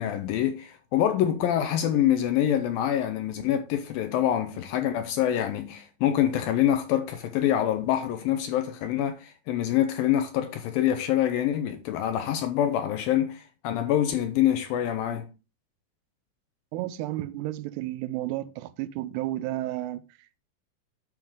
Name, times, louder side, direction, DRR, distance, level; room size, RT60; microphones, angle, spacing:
voice 1, 0.0-15.3, left 11 dB, 80° left, 2.2 m, -25 dB
voice 2, 16.7-20.0, right 15 dB, 90° right, 2.7 m, -32 dB
9.0 x 5.8 x 3.7 m
omnidirectional pair, 4.7 m